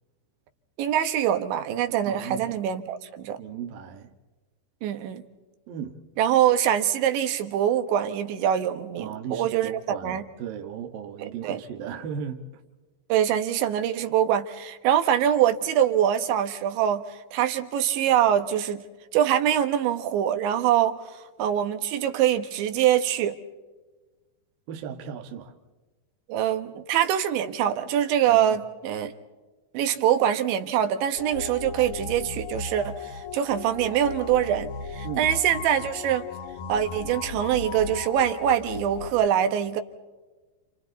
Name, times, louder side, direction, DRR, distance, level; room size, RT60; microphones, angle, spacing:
voice 1, 0.8-3.4 4.8-5.2 6.2-10.3 11.2-11.6 13.1-18.8 19.1-23.4 26.3-29.1 29.7-36.3 36.7-39.8, right 10 dB, 85° right, 3.7 m, -24 dB
voice 2, 2.1-2.6 3.4-4.1 5.7-6.0 9.0-12.4 24.7-25.5 28.3-28.6 35.0-35.3, right 8 dB, 60° right, 2.9 m, -36 dB
sound 1, 31.2-39.1, left 4 dB, 65° left, 2.0 m, -36 dB
30.0 x 30.0 x 4.1 m
omnidirectional pair, 5.1 m